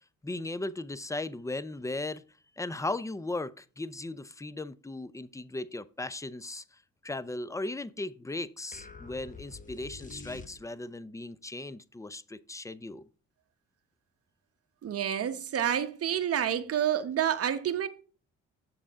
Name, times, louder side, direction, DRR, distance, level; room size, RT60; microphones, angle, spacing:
voice 1, 0.2-2.2 2.6-13.1, left 2 dB, 10° left, 0.5 m, -37 dB
sound 1, 8.7-11.0, left 4 dB, 25° left, 1.3 m, -47 dB
voice 2, 14.8-17.9, right 9 dB, 50° right, 1.1 m, -29 dB
7.6 x 6.9 x 3.6 m
cardioid pair, 90°, 30 cm